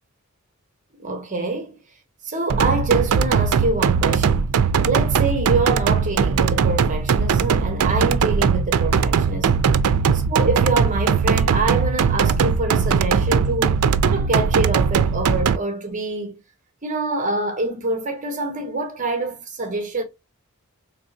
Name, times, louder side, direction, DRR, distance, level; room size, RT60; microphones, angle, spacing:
voice 1, 1.0-1.7 2.2-4.5 4.9-9.7 10.3-13.8 14.0-16.3 16.8-20.0, right 3 dB, 35° right, 1.0 m, -25 dB
sound 1, 2.5-15.6, right 6 dB, 85° right, 0.4 m, -19 dB
4.4 x 3.3 x 2.6 m
head